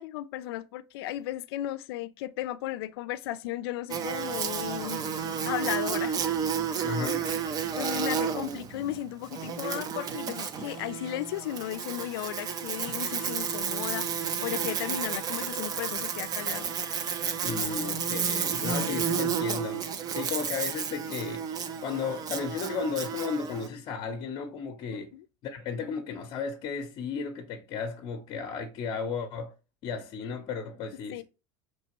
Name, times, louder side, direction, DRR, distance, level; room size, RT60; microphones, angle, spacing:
voice 1, 0.0-5.0 5.4-6.2 7.8-16.7 18.1-18.3 18.6-19.2 24.9-25.2 31.1-31.2, left 13 dB, 80° left, 0.4 m, -35 dB
Buzz, 3.9-23.7, right 7 dB, 30° right, 0.5 m, -32 dB
voice 2, 6.8-7.3 17.4-19.9 20.1-21.5 21.8-25.1 25.4-29.5 29.8-31.2, left 5 dB, 45° left, 0.7 m, -34 dB
4.3 x 3.2 x 2.9 m
supercardioid pair, 130°, 13 cm